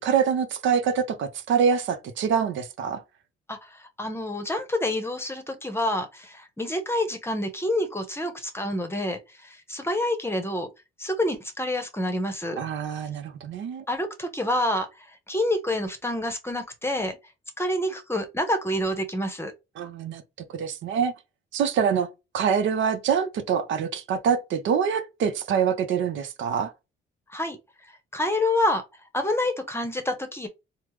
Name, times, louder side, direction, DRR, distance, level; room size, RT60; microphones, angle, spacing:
voice 1, 0.0-3.0 12.6-13.8 19.8-20.2 20.6-21.1 21.5-22.1 22.3-26.7, right 7 dB, 75° right, 0.6 m, -25 dB
voice 2, 3.5-10.7 11.0-12.6 13.9-17.2 17.6-19.5 27.3-27.6 28.1-28.8 29.1-30.5, left 1 dB, 10° left, 0.8 m, -28 dB
3.4 x 2.0 x 3.1 m
cardioid pair, 90°, 20 cm